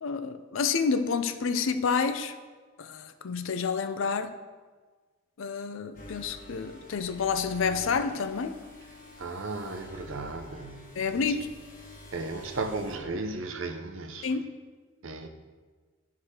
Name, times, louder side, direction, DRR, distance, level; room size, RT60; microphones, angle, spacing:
voice 1, 0.0-2.3 2.8-4.3 5.4-8.6 11.0-11.5 14.2-14.5, left 5 dB, 65° left, 0.4 m, -29 dB
sound 1, 5.9-13.0, left 1 dB, 40° left, 1.1 m, -47 dB
voice 2, 9.2-10.9 11.2-11.4 12.1-14.4 15.0-15.3, right 3 dB, 65° right, 0.7 m, -35 dB
11.5 x 4.8 x 2.9 m
head